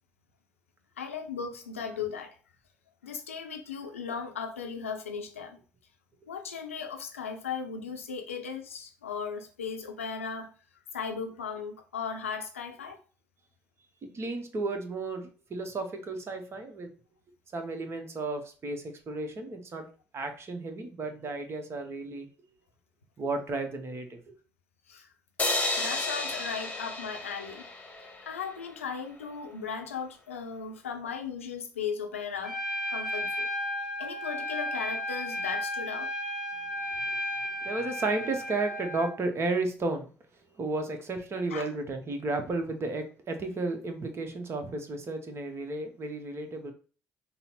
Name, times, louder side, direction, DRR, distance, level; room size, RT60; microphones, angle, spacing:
voice 1, 1.0-2.3 3.0-5.6 6.3-10.5 10.9-13.0 24.9-25.1 25.8-27.7 28.2-32.6 32.9-33.5 34.0-36.1 41.5-41.6, left 6 dB, 80° left, 0.6 m, -37 dB
voice 2, 14.0-16.9 17.5-19.9 20.1-22.3 23.2-24.4 37.6-40.1 40.5-46.7, right 3 dB, 35° right, 0.9 m, -33 dB
sound 1, 25.4-28.7, left 2 dB, 20° left, 0.9 m, -32 dB
Trumpet, 32.4-39.1, left 1 dB, 5° right, 1.4 m, -34 dB
5.4 x 2.0 x 4.2 m
figure-of-eight pair, 50°, 7 cm